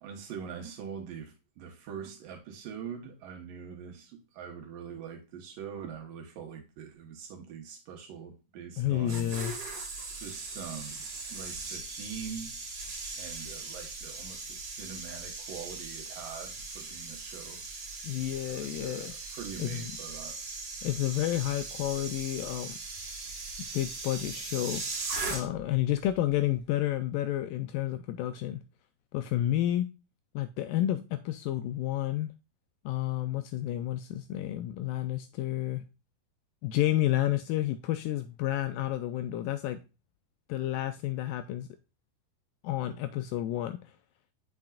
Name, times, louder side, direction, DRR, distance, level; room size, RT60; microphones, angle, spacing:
voice 1, 0.0-9.4 10.2-12.6 13.2-17.6 18.5-20.4, right 7 dB, 70° right, 2.8 m, -43 dB
voice 2, 8.8-9.6 18.0-19.1 19.6-19.9 20.8-22.8 23.7-24.8 25.3-28.6 29.1-29.9 30.4-32.3 32.9-35.8 36.6-39.8 40.5-41.7 42.6-43.8, left 13 dB, 85° left, 2.0 m, -30 dB
sound 1, 8.8-25.8 26.0-26.3, right 3 dB, 45° right, 2.4 m, -39 dB
7.7 x 5.7 x 2.4 m
omnidirectional pair, 4.4 m